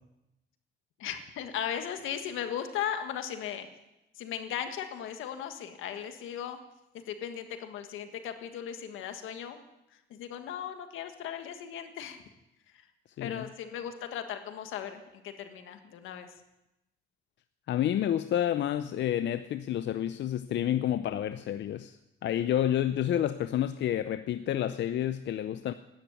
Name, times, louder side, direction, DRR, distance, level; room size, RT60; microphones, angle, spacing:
voice 1, 1.0-3.7 4.1-6.6 7.1-9.6 10.1-12.2 13.2-16.3, left 9 dB, 85° left, 1.6 m, -37 dB
voice 2, 17.7-22.0 22.2-25.7, left 11 dB, 65° left, 0.6 m, -29 dB
12.5 x 10.5 x 9.3 m
cardioid pair, 90°, 20 cm